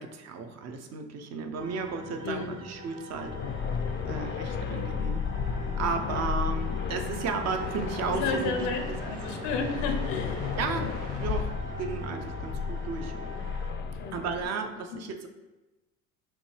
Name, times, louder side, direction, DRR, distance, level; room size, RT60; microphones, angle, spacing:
voice 1, 0.0-3.6 4.0-5.3 5.8-9.0 10.6-13.1 14.1-15.3, right 5 dB, 50° right, 6 dB, 0.6 m, -34 dB
sound 1, 1.5-13.7, right 3 dB, 85° right, 0.8 m, -42 dB
voice 2, 2.2-2.6 8.2-10.6 14.0-14.2 14.5-14.6 14.9-15.0, left 4 dB, 85° left, 4 dB, 0.7 m, -32 dB
sound 2, 3.1-14.5, left 6 dB, 35° left, 0.4 m, -33 dB
5.9 x 2.3 x 3.2 m, 1.1 s
supercardioid pair, 90°, 34 cm